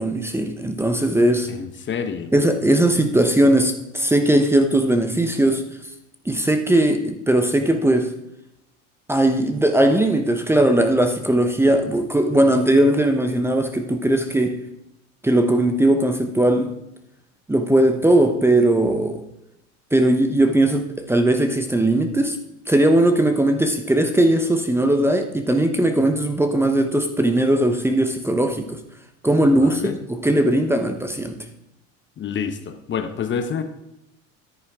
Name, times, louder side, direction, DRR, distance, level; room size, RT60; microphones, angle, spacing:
voice 1, 0.0-1.5 2.3-5.6 6.3-8.1 9.1-14.5 15.2-16.7 17.5-19.2 19.9-22.4 22.7-28.8 29.2-31.4, right 1 dB, 5° right, 7 dB, 0.9 m, -19 dB
voice 2, 1.5-2.3 29.5-29.9 32.2-33.6, left 7 dB, 30° left, 9 dB, 0.9 m, -28 dB
10.5 x 9.1 x 3.6 m, 0.85 s
supercardioid pair, 105°, 35 cm